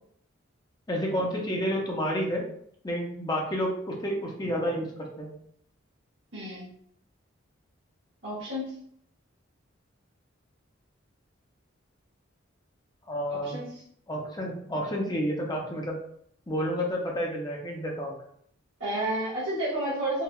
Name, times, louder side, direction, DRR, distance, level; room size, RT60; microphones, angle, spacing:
voice 1, 0.9-2.5 2.8-5.3 13.1-13.6 14.1-16.0 16.5-18.2, equal, 20° left, -1 dB, 0.6 m, -30 dB
voice 2, 6.3-6.7 8.2-8.7 13.3-13.6 18.8-20.2, right 1 dB, 70° right, -9 dB, 1.3 m, -31 dB
4.6 x 2.3 x 2.3 m, 0.66 s
head